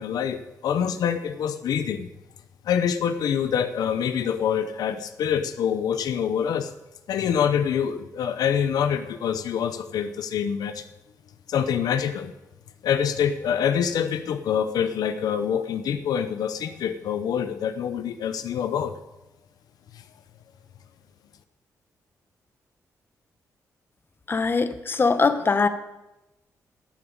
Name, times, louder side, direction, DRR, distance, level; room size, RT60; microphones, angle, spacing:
voice 1, 0.0-2.1 2.6-6.7 7.1-10.8 11.5-12.3 12.8-18.9 19.9-20.0, left 8 dB, 85° left, 10 dB, 0.8 m, -25 dB
voice 2, 24.3-25.7, left 4 dB, 35° left, 11 dB, 1.1 m, -22 dB
12.5 x 7.0 x 9.0 m, 0.97 s
cardioid pair, 90°, 6 cm